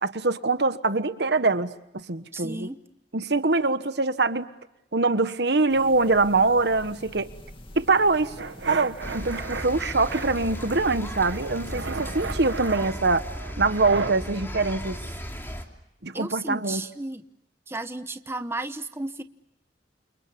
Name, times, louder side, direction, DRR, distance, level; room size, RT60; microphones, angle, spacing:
voice 1, 0.0-1.7 2.1-2.7 3.1-4.5 4.9-7.3 7.7-8.3 8.7-13.2 13.6-15.0 16.0-16.8, right 3 dB, 70° right, 11 dB, 1.3 m, -23 dB
voice 2, 2.3-2.8 16.1-17.2 17.7-19.2, right 2 dB, 15° right, 9 dB, 1.0 m, -33 dB
sound 1, 5.7-12.6, left 1 dB, 30° left, 2.4 m, -46 dB
sound 2, 8.4-9.7 10.1-11.0 11.2-14.2, right 4 dB, 85° right, 1.2 m, -35 dB
sound 3, 9.0-15.6, equal, 15° left, 3.1 m, -36 dB
29.5 x 28.5 x 6.9 m, 0.83 s
head